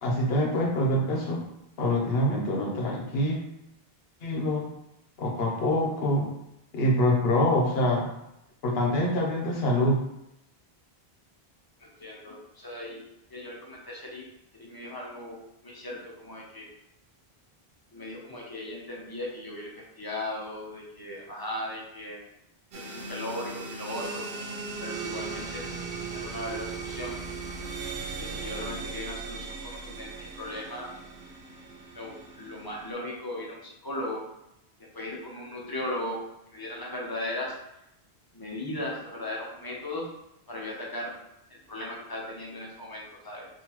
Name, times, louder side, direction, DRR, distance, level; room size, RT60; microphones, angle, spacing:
voice 1, 0.0-1.4 1.8-3.4 4.2-4.7 5.2-6.3 6.7-8.1 8.6-10.0, left 1 dB, 75° left, 0 dB, 1.0 m, -25 dB
voice 2, 11.8-13.0 13.3-14.3 14.6-15.4 15.6-16.7 17.9-22.2 22.7-24.3 24.8-25.7 26.1-27.3 28.2-30.9 31.9-34.3 34.9-36.2 36.5-37.5 38.3-40.1 40.5-41.1 41.5-43.5, left 1 dB, 25° left, -3 dB, 0.6 m, -37 dB
sound 1, 22.7-32.9, right 4 dB, 70° right, 0.8 m, -38 dB
3.7 x 2.6 x 2.9 m, 0.83 s
omnidirectional pair, 1.0 m